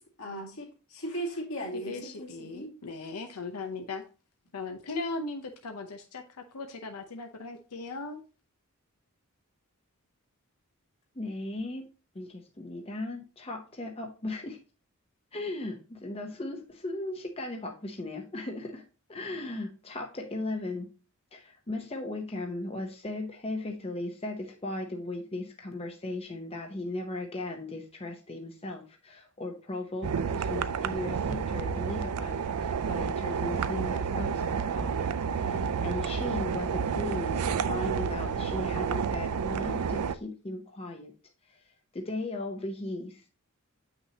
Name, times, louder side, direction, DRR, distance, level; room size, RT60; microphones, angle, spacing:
voice 1, 0.2-2.7, right 1 dB, 65° left, -1 dB, 2.2 m, -37 dB
voice 2, 1.9-4.0 4.5-6.2 6.5-8.2, left 3 dB, 90° left, 4 dB, 0.8 m, -38 dB
voice 3, 11.1-11.9 12.1-14.6 15.3-18.8 19.1-20.9 21.3-41.1 41.4-41.6 41.9-43.3, left 2 dB, 25° left, 2 dB, 0.8 m, -37 dB
sound 1, 30.0-40.2, right 6 dB, 90° right, 0.5 m, -30 dB
8.0 x 5.9 x 2.8 m, 0.34 s
head